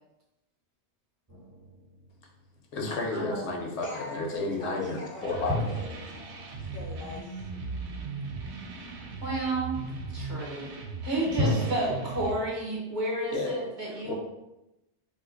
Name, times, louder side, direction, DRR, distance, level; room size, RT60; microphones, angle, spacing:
sound 1, 1.3-2.6 5.5-8.1 11.4-12.3, left 1 dB, 20° right, 0.6 m, -34 dB
voice 1, 2.7-5.7 13.3-13.5 14.0-14.1, left 2 dB, 75° left, 1 dB, 0.9 m, -32 dB
voice 2, 3.7-6.1 6.6-7.5, left 3 dB, 60° left, -2 dB, 0.6 m, -41 dB
sound 2, 5.2-12.3, right 3 dB, 75° right, 0.8 m, -38 dB
voice 3, 9.2-9.8 10.1-10.7 11.0-14.1, right 2 dB, 45° right, -4 dB, 0.9 m, -31 dB
2.6 x 2.5 x 3.8 m, 0.94 s
omnidirectional pair, 1.2 m